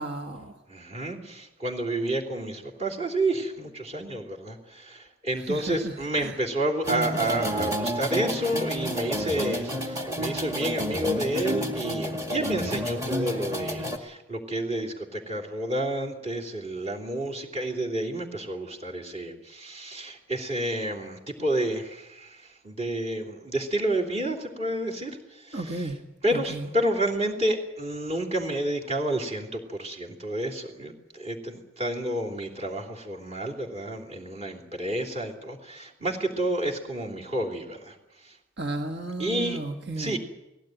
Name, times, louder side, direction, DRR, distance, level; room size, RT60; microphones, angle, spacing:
voice 1, 0.0-0.6 5.3-6.4 25.5-26.0 26.3-26.7 38.6-40.2, right 2 dB, 55° right, 4 dB, 1.6 m, -34 dB
voice 2, 0.7-25.8 26.2-38.0 38.2-38.4 39.2-39.6 40.0-40.2, right 1 dB, 30° right, -1 dB, 3.3 m, -30 dB
sound 1, 6.8-14.0, equal, 15° right, 2.0 m, -30 dB
19.5 x 16.5 x 9.2 m, 0.94 s
head